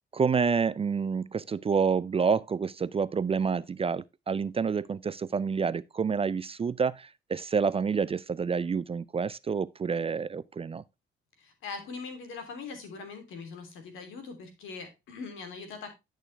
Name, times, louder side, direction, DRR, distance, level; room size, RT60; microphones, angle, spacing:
voice 1, 0.1-10.8, right 5 dB, 30° right, 0.4 m, -28 dB
voice 2, 11.4-15.9, left 4 dB, 85° left, 3.1 m, -41 dB
11.0 x 6.5 x 3.3 m
cardioid pair, 90°, 20 cm